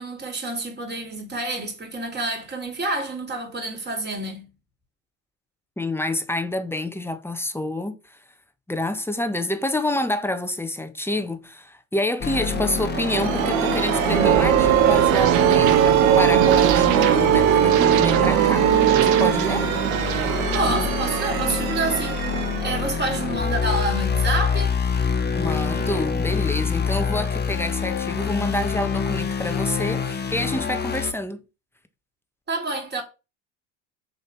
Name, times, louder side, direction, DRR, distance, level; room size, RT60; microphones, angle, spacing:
voice 1, 0.0-4.5 20.5-24.7 32.5-33.0, right 2 dB, 25° right, 3.4 m, -28 dB
voice 2, 5.8-8.2 8.7-18.7 19.0-19.7 25.3-31.4, left 1 dB, 5° left, 1.3 m, -28 dB
sound 1, 12.2-31.1, left 5 dB, 25° left, 1.3 m, -27 dB
sound 2, 12.5-24.0, right 9 dB, 80° right, 1.1 m, -23 dB
sound 3, 14.2-19.3, right 11 dB, 40° right, 0.6 m, -19 dB
6.7 x 4.3 x 5.8 m
hypercardioid pair, 80°, 40 cm